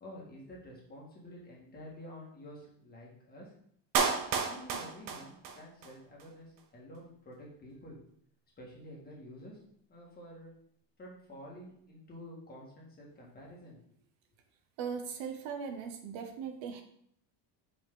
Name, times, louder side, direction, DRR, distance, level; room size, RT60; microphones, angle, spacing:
voice 1, 0.0-3.5 4.5-8.0 8.6-9.6 9.9-10.5 11.0-13.8, equal, 20° left, -3 dB, 1.8 m, -49 dB
Clapping, 3.9-5.9 6.2-6.3, right 6 dB, 45° right, 0.7 m, -32 dB
voice 2, 14.8-16.8, right 6 dB, 70° right, 6 dB, 1.1 m, -39 dB
5.7 x 5.1 x 3.8 m, 0.65 s
cardioid pair, 165°, 47 cm